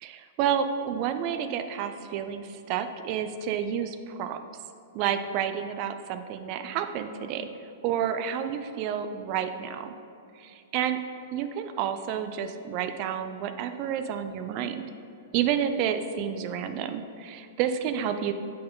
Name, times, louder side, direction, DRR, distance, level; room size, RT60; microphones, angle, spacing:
voice 1, 0.0-4.4 4.9-7.5 7.8-9.9 10.4-11.0 11.3-14.9 15.3-18.3, right 9 dB, 45° right, 9 dB, 0.4 m, -30 dB
8.3 x 4.5 x 3.8 m, 2.6 s
hypercardioid pair, 110°, 0 cm